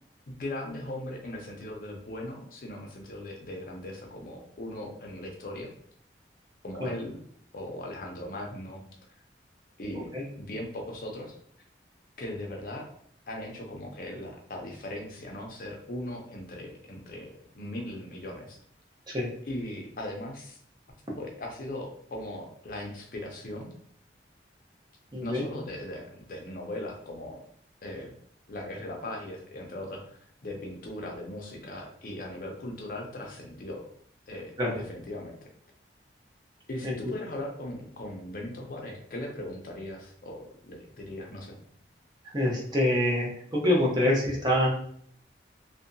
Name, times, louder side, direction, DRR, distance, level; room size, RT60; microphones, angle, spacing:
voice 1, 0.3-5.7 6.6-7.2 7.5-8.8 9.8-10.1 10.4-11.4 12.2-12.9 13.3-18.6 19.5-20.6 21.1-23.7 25.2-27.4 27.8-28.1 28.5-33.8 34.3-35.3 36.7-41.6, left 1 dB, 50° left, 1 dB, 0.5 m, -39 dB
voice 2, 25.1-25.4 34.6-34.7 36.8-37.0 42.3-44.7, left 1 dB, 25° right, -3 dB, 0.7 m, -25 dB
2.7 x 2.2 x 2.5 m, 0.63 s
head